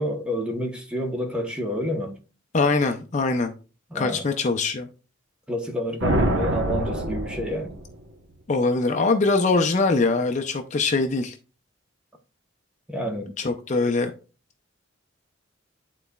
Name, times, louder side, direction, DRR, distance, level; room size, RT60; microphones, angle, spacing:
voice 1, 0.0-2.2 3.9-4.3 5.5-7.7 12.9-13.3, equal, 5° right, 0.9 m, -29 dB
voice 2, 2.5-3.5 3.9-4.9 8.5-11.4 13.4-14.1, left 3 dB, 35° left, 0.5 m, -22 dB
sound 1, 6.0-8.1, right 1 dB, 70° right, 1.0 m, -25 dB
10.5 x 4.0 x 2.3 m
head